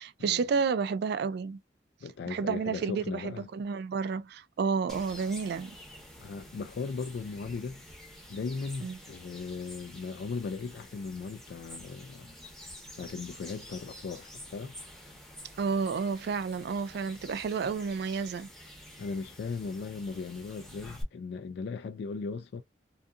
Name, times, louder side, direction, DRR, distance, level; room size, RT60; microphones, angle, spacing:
voice 1, 0.0-1.6 2.3-5.8 8.8-9.0 15.6-18.5, right 5 dB, 60° right, 0.3 m, -31 dB
voice 2, 2.0-3.5 6.2-7.8 8.3-12.3 12.7-14.8 19.0-22.6, left 4 dB, 60° left, 0.3 m, -37 dB
sound 1, 4.9-21.0, equal, ahead, 0.8 m, -49 dB
2.6 x 2.4 x 2.4 m
head